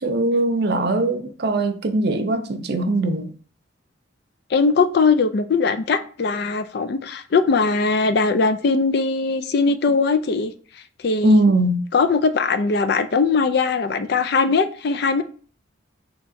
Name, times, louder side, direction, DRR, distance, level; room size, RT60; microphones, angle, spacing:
voice 1, 0.0-3.3 11.2-11.8, right 2 dB, 50° right, 0.5 m, -20 dB
voice 2, 4.5-10.5 11.0-11.4 11.9-15.2, left 4 dB, 55° left, 0.4 m, -20 dB
3.6 x 2.9 x 4.2 m
head